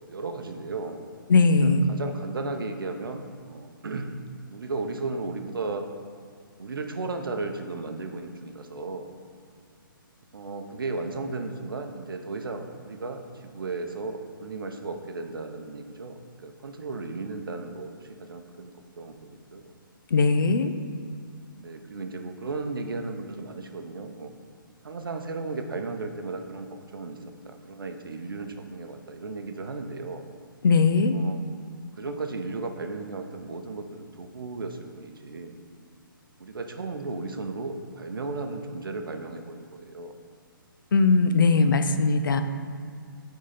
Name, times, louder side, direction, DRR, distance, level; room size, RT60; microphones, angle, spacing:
voice 1, 0.1-1.0 1.6-4.2 4.4-5.9 6.6-9.1 10.3-18.7 19.0-19.7 21.6-24.3 24.8-27.2 27.4-30.2 31.1-31.4 32.0-35.6 36.4-40.1, right 3 dB, 70° right, 5 dB, 0.6 m, -35 dB
voice 2, 1.3-1.8 20.1-20.7 30.6-31.2 40.9-42.4, left 4 dB, 65° left, 9 dB, 0.5 m, -20 dB
7.3 x 3.8 x 4.1 m, 2.1 s
figure-of-eight pair, 135°, 12 cm